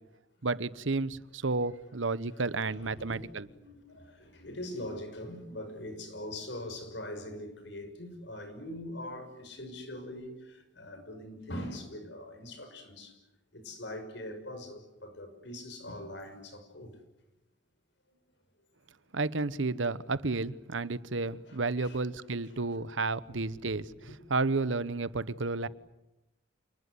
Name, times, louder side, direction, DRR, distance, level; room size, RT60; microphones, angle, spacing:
voice 1, 0.4-3.5 19.1-23.9 24.3-25.7, right 3 dB, 80° right, 1.0 m, -31 dB
voice 2, 2.7-13.2 13.5-17.0 21.4-22.8 23.4-24.1, left 1 dB, 65° left, 6.2 m, -43 dB
29.0 x 20.0 x 9.6 m
head